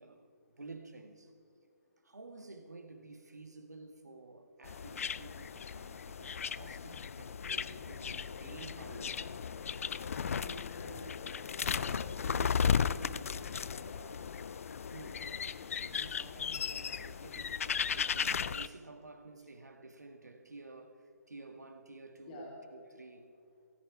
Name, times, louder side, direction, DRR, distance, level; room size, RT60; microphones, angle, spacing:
voice 1, 0.0-1.3 2.0-9.5 14.9-15.4 15.8-23.3, right 3 dB, 75° right, 1.7 m, -52 dB
sound 1, 4.6-18.7, left 7 dB, 55° left, 0.4 m, -36 dB
voice 2, 10.3-11.3 11.7-14.3 18.6-18.7 22.3-22.6, equal, 30° left, 3.2 m, -49 dB
17.0 x 15.0 x 4.8 m
figure-of-eight pair, 140°, 9 cm